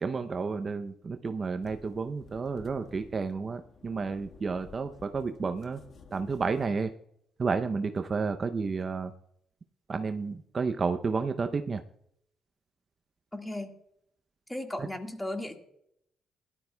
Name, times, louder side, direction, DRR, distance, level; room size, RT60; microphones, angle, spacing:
voice 1, 0.0-5.8 6.1-6.9 7.4-9.1 9.9-11.8 14.8-14.9, right 4 dB, 40° right, 8 dB, 0.6 m, -31 dB
sound 1, 1.6-6.7, left 5 dB, 55° left, 1.5 m, -53 dB
voice 2, 13.3-13.8 14.5-15.6, left 1 dB, 10° left, 4 dB, 1.7 m, -36 dB
17.5 x 12.0 x 2.3 m, 0.73 s
cardioid pair, 90°, 0 cm